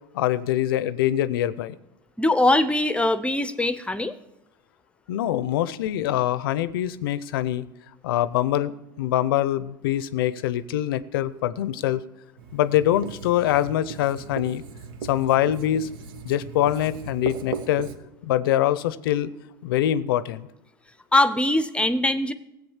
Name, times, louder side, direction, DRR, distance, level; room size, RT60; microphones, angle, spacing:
voice 1, 0.1-1.7 5.1-7.7 8.0-12.0 12.5-14.6 15.0-15.9 16.2-17.9 18.2-19.3 19.6-20.5, left 12 dB, 85° left, 18 dB, 0.6 m, -24 dB
voice 2, 2.2-4.2 21.1-22.3, left 1 dB, 10° left, 14 dB, 0.7 m, -21 dB
Writing, 12.4-18.0, right 6 dB, 80° right, 1.1 m, -37 dB
15.0 x 7.8 x 7.2 m, 0.93 s
hypercardioid pair, 90°, 12 cm